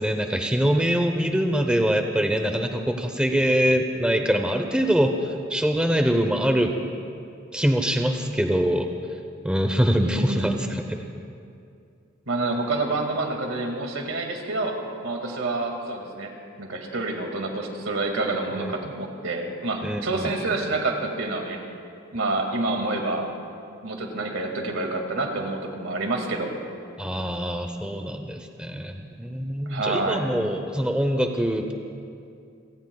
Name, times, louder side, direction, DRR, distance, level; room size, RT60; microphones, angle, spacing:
voice 1, 0.0-6.7 7.5-8.9 9.4-11.0 18.6-18.8 19.8-20.3 27.0-31.7, equal, 5° right, 5 dB, 0.7 m, -24 dB
voice 2, 9.9-10.6 12.3-14.8 15.0-16.3 16.6-21.6 22.1-23.3 23.8-26.5 29.7-30.3, right 2 dB, 85° right, 2 dB, 2.1 m, -28 dB
29.5 x 17.5 x 2.3 m, 2.4 s
head